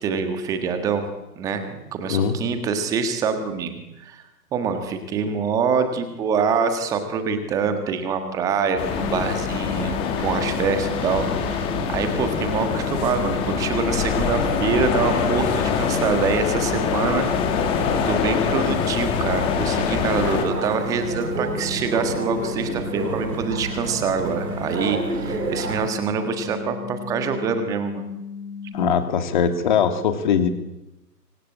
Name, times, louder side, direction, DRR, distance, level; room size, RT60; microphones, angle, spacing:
voice 1, 0.0-1.1 1.3-4.2 4.5-17.3 18.0-28.1, right 5 dB, 5° right, 8 dB, 1.5 m, -25 dB
sound 1, 8.8-20.5, left 6 dB, 10° left, 2.0 m, -24 dB
sound 2, 9.0-28.8, left 6 dB, 80° left, 2.8 m, -36 dB
sound 3, 20.2-25.9, right 2 dB, 65° right, 4.8 m, -30 dB
voice 2, 28.7-30.5, left 7 dB, 30° left, 8 dB, 2.6 m, -21 dB
25.5 x 24.0 x 8.8 m, 0.96 s
figure-of-eight pair, 150°, 50 cm